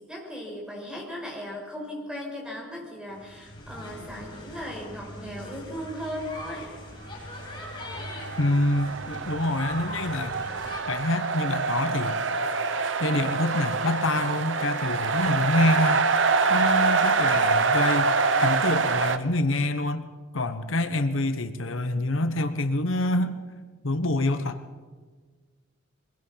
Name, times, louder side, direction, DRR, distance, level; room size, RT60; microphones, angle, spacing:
voice 1, 0.0-6.7, equal, 5° right, -1 dB, 5.8 m, -37 dB
sound 1, 3.1-10.8, left 1 dB, 25° left, 6.3 m, -41 dB
sound 2, 7.7-19.2, right 4 dB, 65° right, 1.1 m, -25 dB
voice 2, 8.4-10.4 10.9-12.2 13.0-16.1 16.5-18.1 18.4-20.0 20.3-23.4 23.8-24.6, left 2 dB, 75° left, 9 dB, 1.2 m, -26 dB
24.0 x 21.0 x 5.8 m, 1.4 s
head